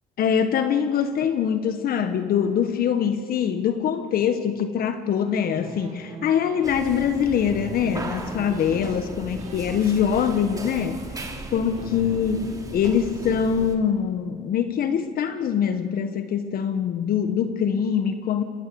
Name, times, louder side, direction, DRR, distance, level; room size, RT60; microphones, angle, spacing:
voice 1, 0.2-11.0 11.5-12.5 12.7-18.4, left 8 dB, 60° left, 9 dB, 1.4 m, -23 dB
sound 1, 5.6-9.1 9.4-12.1, right 2 dB, 45° right, 6.4 m, -42 dB
sound 2, 6.6-13.8, right 2 dB, 20° right, 3.0 m, -37 dB
27.5 x 21.0 x 7.0 m, 2.3 s
cardioid pair, 110°, 17 cm